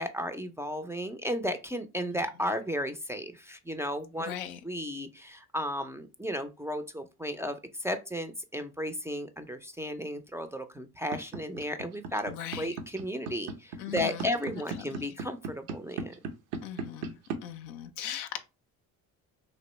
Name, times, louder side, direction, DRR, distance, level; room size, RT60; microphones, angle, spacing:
voice 1, 0.0-4.3 4.6-16.1, equal, 5° right, 0.3 m, -34 dB
voice 2, 4.2-4.6 12.3-12.7 13.8-14.1 14.9-15.1 16.6-17.2 17.4-18.4, left 11 dB, 90° left, 0.6 m, -38 dB
sound 1, 11.1-17.3, right 5 dB, 85° right, 0.7 m, -35 dB
3.1 x 2.6 x 3.0 m
supercardioid pair, 70°, 41 cm